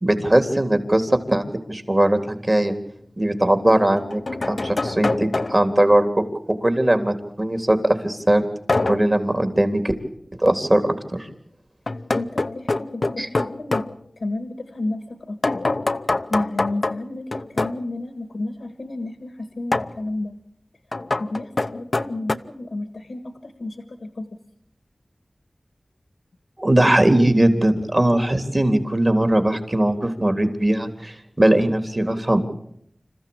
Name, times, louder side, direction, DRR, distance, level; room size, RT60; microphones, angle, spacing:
voice 1, 0.0-2.8 3.2-7.8 8.0-8.4 8.8-9.9 10.4-10.8 11.1-11.3 13.2-13.3 26.6-32.5, right 1 dB, 35° right, 7 dB, 3.4 m, -20 dB
sound 1, 2.5-2.6 3.8-5.8 8.7-9.2 11.9-14.0 15.4-17.9 19.7-20.0 20.9-22.4, left 2 dB, 65° left, 0.8 m, -25 dB
voice 2, 12.1-13.9 14.2-15.7 16.3-20.3 21.2-24.3, left 2 dB, 90° left, 9 dB, 1.7 m, -31 dB
27.0 x 14.5 x 8.8 m, 0.72 s
wide cardioid pair, 45°, 0 cm